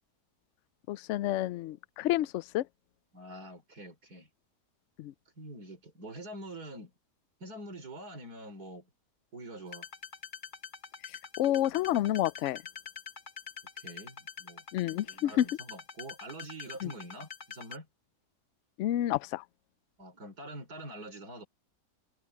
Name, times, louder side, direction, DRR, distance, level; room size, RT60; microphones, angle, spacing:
voice 1, 0.9-2.7 5.0-5.1 11.0-11.1 11.4-12.6 14.7-15.5 16.8-16.9 18.8-19.4, left 13 dB, 75° left, 0.6 m, -29 dB
voice 2, 3.1-4.3 5.4-6.9 7.4-8.9 9.3-9.9 13.8-17.9 20.0-21.5, right 1 dB, 65° right, 5.3 m, -45 dB
sound 1, 9.7-17.8, left 6 dB, 30° left, 1.3 m, -45 dB
omnidirectional pair, 1.7 m